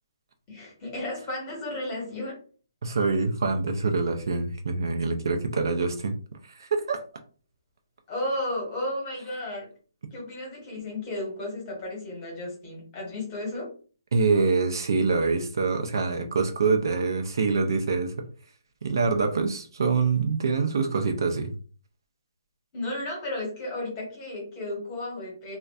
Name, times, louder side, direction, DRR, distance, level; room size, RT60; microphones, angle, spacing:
voice 1, 0.5-2.4 8.1-9.7 10.1-13.7 22.7-25.6, left 1 dB, 20° left, 1.0 m, -33 dB
voice 2, 2.8-6.2 6.4-7.0 14.1-18.3 18.8-21.5, right 4 dB, 60° right, 0.4 m, -25 dB
2.5 x 2.1 x 2.3 m
hypercardioid pair, 165°, 2 cm